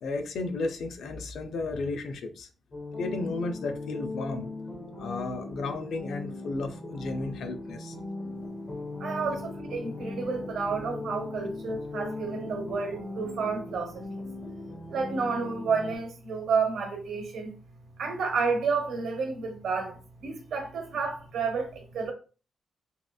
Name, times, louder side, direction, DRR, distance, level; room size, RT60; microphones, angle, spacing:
voice 1, 0.0-2.5 3.0-4.5 5.0-8.0, left 3 dB, 75° left, 0.4 m, -33 dB
sound 1, 2.7-16.0, left 2 dB, 25° left, 0.8 m, -39 dB
voice 2, 9.0-14.0 14.9-17.5 18.0-22.1, right 5 dB, 85° right, 0.8 m, -30 dB
3.1 x 2.8 x 2.3 m
wide cardioid pair, 180°, 0 cm